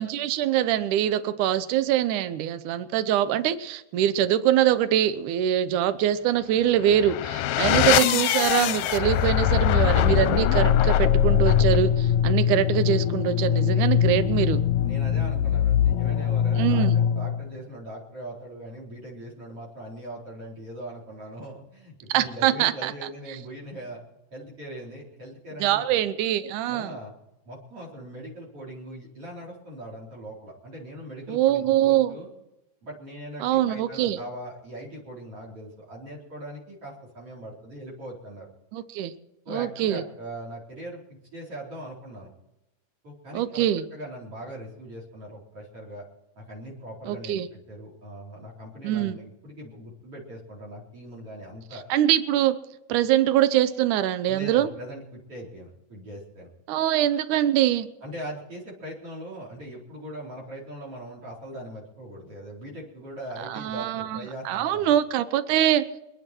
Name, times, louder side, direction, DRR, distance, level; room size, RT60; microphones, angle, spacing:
voice 1, 0.0-14.6 16.6-17.0 22.1-22.9 23.3-23.4 25.6-27.0 31.3-32.2 33.4-34.2 38.7-39.1 39.5-40.0 43.3-43.9 47.1-47.5 48.8-49.2 51.9-52.6 52.9-54.7 56.7-57.9 63.4-65.9, right 11 dB, 75° right, 12 dB, 2.4 m, -23 dB
sound 1, 6.8-17.5, left 10 dB, 75° left, 1.9 m, -22 dB
voice 2, 14.8-24.0 24.3-25.9 26.7-27.1 27.5-32.3 32.8-38.5 39.5-41.0 41.3-42.3 43.0-46.0 46.4-51.8 54.3-56.5 58.0-65.0, right 1 dB, 45° right, -2 dB, 5.4 m, -40 dB
28.0 x 10.0 x 4.5 m, 0.93 s
omnidirectional pair, 3.7 m